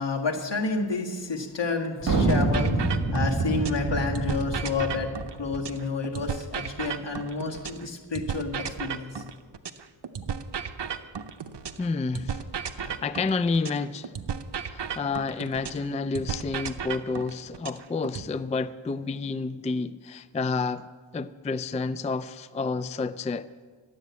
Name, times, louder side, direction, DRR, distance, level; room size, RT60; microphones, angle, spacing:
voice 1, 0.0-5.1 5.4-9.2, left 4 dB, 70° left, 1.7 m, -30 dB
sound 1, 2.0-5.7, right 2 dB, 50° right, 1.9 m, -26 dB
sound 2, 2.3-3.9 4.1-7.9 8.1-11.9 12.1-15.9 16.1-18.3, right 7 dB, 70° right, 0.8 m, -34 dB
voice 2, 11.8-12.4 12.7-14.1 14.7-20.9 21.1-23.5, left 4 dB, 20° left, 0.3 m, -30 dB
12.0 x 7.7 x 9.4 m
wide cardioid pair, 70°, 43 cm